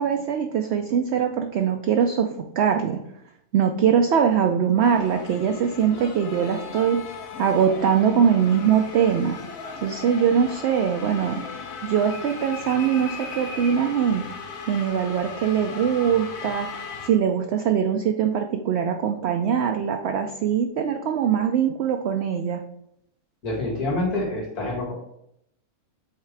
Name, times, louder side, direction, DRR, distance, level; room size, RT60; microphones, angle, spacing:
voice 1, 0.0-3.0 3.5-7.1 7.4-9.4 9.8-11.4 11.8-14.2 14.7-16.7 17.0-22.6, right 8 dB, 65° right, 4 dB, 0.6 m, -22 dB
sound 1, 4.8-17.1, left 5 dB, 70° left, 1.2 m, -37 dB
voice 2, 23.4-24.9, left 2 dB, 90° left, -4 dB, 2.3 m, -26 dB
8.0 x 3.7 x 3.3 m, 0.75 s
omnidirectional pair, 1.6 m